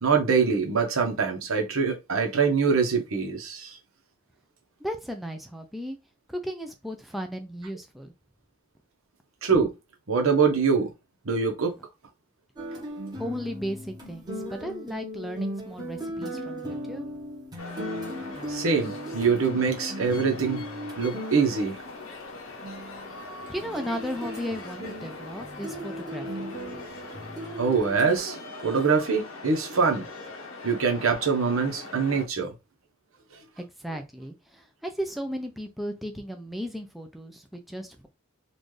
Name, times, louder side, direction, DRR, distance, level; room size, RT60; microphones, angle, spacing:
voice 1, 0.0-3.8 9.4-9.7 10.1-10.9 11.2-11.7 18.5-20.6 21.0-21.8 27.6-30.0 30.6-32.5, right 5 dB, 85° right, 1.1 m, -24 dB
voice 2, 4.8-6.0 6.3-8.1 12.7-12.8 13.2-17.1 23.5-26.5 33.6-38.1, equal, ahead, 0.4 m, -35 dB
sound 1, 12.6-21.8 22.6-28.1, equal, 20° right, 1.0 m, -37 dB
sound 2, 17.6-32.3, left 3 dB, 90° left, 0.9 m, -41 dB
4.0 x 2.5 x 3.2 m
head